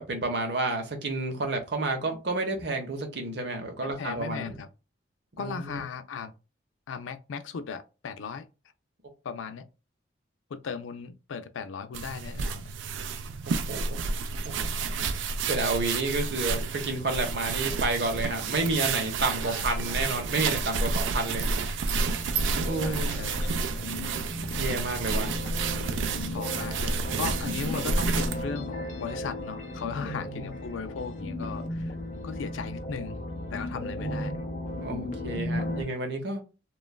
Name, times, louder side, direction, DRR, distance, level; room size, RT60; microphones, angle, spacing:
voice 1, 0.0-4.6 5.3-5.8 13.5-14.0 14.6-15.1 15.5-21.5 22.5-23.3 24.6-25.3 27.5-27.6 30.0-30.5 34.0-34.4 34.8-36.4, right 2 dB, 60° right, 0.7 m, -30 dB
voice 2, 3.8-4.7 5.4-6.3 6.9-8.4 9.2-9.6 10.5-12.7 19.4-20.0 22.8-24.0 25.1-25.5 26.3-31.9 32.2-33.2 33.5-34.3 35.6-35.9, left 5 dB, 85° left, 0.4 m, -37 dB
sound 1, 11.9-28.4, right 4 dB, 80° right, 0.3 m, -30 dB
sound 2, 21.2-35.8, left 1 dB, 40° left, 0.5 m, -36 dB
3.0 x 2.3 x 2.2 m
head